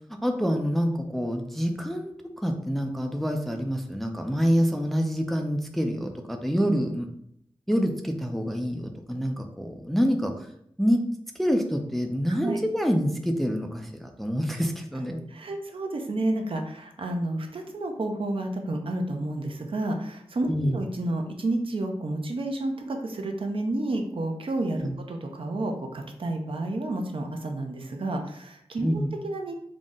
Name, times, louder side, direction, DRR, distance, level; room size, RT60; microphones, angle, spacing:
voice 1, 0.2-7.1 7.7-10.5 10.8-11.0 11.4-15.2 20.5-20.8 24.8-24.9 28.8-29.1, equal, ahead, 4 dB, 0.4 m, -26 dB
voice 2, 12.3-12.6 15.3-29.6, right 2 dB, 55° right, 3 dB, 0.5 m, -30 dB
3.8 x 2.0 x 3.6 m, 0.71 s
wide cardioid pair, 90°, 11 cm